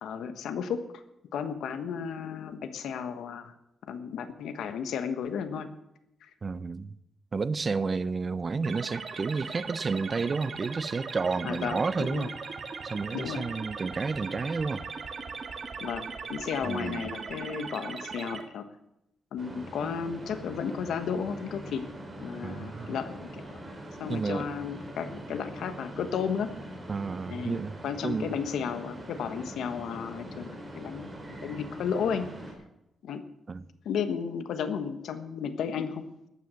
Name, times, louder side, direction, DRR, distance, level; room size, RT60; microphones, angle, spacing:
voice 1, 0.0-0.8 1.3-3.5 3.9-5.7 6.2-6.3 11.4-12.3 13.1-13.5 15.8-18.6 19.3-21.8 22.2-23.6 24.0-26.5 27.3-27.6 27.8-32.3 33.0-33.2 33.8-36.0, left 7 dB, 85° left, 1.2 m, -33 dB
voice 2, 6.4-6.9 7.3-12.3 12.8-14.8 16.6-17.1 22.4-22.9 24.1-24.5 26.9-28.4 33.5-33.6, right 4 dB, 35° right, 0.5 m, -31 dB
sound 1, 8.6-18.4, right 5 dB, 50° right, 1.6 m, -39 dB
sound 2, 19.4-32.5, right 1 dB, 15° right, 3.8 m, -43 dB
14.0 x 9.4 x 6.3 m
cardioid pair, 115°, 0 cm